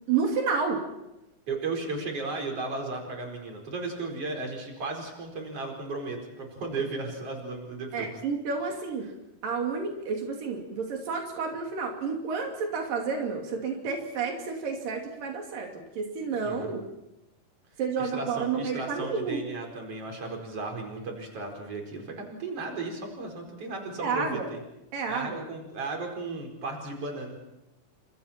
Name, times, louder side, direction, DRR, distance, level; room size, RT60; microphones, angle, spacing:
voice 1, 0.1-0.9 7.9-9.1 9.4-16.9 17.8-19.4 24.0-24.5 24.9-25.4, right 5 dB, 90° right, 1 dB, 4.5 m, -30 dB
voice 2, 1.5-8.1 16.4-16.7 18.0-24.6 25.1-27.4, right 3 dB, 45° right, 2 dB, 5.7 m, -35 dB
29.5 x 27.0 x 4.5 m, 0.89 s
omnidirectional pair, 3.8 m